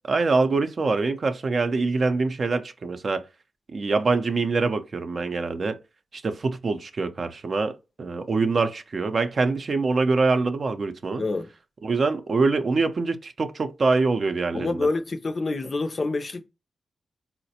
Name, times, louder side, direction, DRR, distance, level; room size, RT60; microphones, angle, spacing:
voice 1, 0.1-3.2 3.7-5.8 6.1-7.7 8.0-11.2 11.8-14.9, right 3 dB, 50° right, 0.5 m, -24 dB
voice 2, 11.1-11.5 14.5-16.5, left 3 dB, 45° left, 0.5 m, -27 dB
4.0 x 2.1 x 2.7 m
cardioid pair, 70°, 0 cm